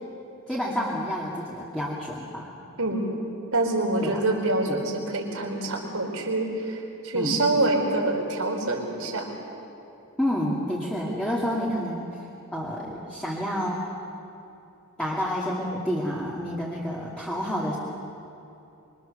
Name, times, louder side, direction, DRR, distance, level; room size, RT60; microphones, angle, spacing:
voice 1, 0.5-2.5 4.0-4.2 4.7-4.8 7.1-7.4 10.2-13.8 15.0-17.8, equal, 5° left, -6 dB, 2.5 m, -29 dB
voice 2, 2.8-3.2 3.5-9.3, right 2 dB, 75° right, 1 dB, 4.4 m, -26 dB
25.5 x 24.5 x 6.9 m, 2.8 s
head